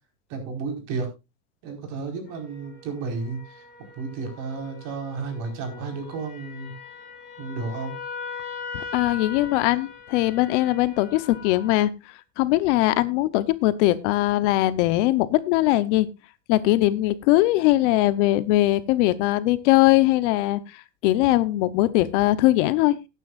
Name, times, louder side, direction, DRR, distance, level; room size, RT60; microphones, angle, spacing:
voice 1, 0.3-1.1 1.6-3.6 3.9-6.8 7.4-8.0, right 4 dB, 50° right, 4 dB, 4.9 m, -32 dB
sound 1, 2.2-11.7, left 5 dB, 25° left, 4.1 m, -40 dB
voice 2, 8.7-11.9 12.4-16.1 16.5-23.0, left 16 dB, 60° left, 15 dB, 1.0 m, -21 dB
18.0 x 9.3 x 2.5 m, 0.24 s
supercardioid pair, 150°, 40 cm